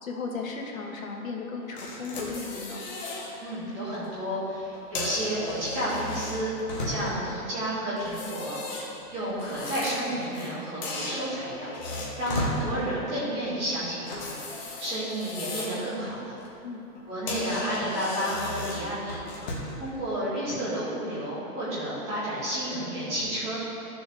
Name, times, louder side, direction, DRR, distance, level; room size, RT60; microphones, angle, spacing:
voice 1, 0.0-2.8 16.6-16.9, left 4 dB, 60° left, 0 dB, 1.5 m, -35 dB
sound 1, 1.8-3.3 3.7-4.0 4.7-7.3 8.0-10.5 10.8-12.6 14.0-15.9 16.2-16.5 16.9-17.0 17.3-19.8, left 2 dB, 30° left, 1.2 m, -35 dB
voice 2, 3.4-6.5 6.8-8.6 9.1-11.7 12.2-14.4 14.8-16.4 17.1-19.2 19.8-23.6, right 1 dB, 15° right, -10 dB, 2.2 m, -31 dB
13.5 x 6.9 x 3.4 m, 2.8 s
hypercardioid pair, 175°, 46 cm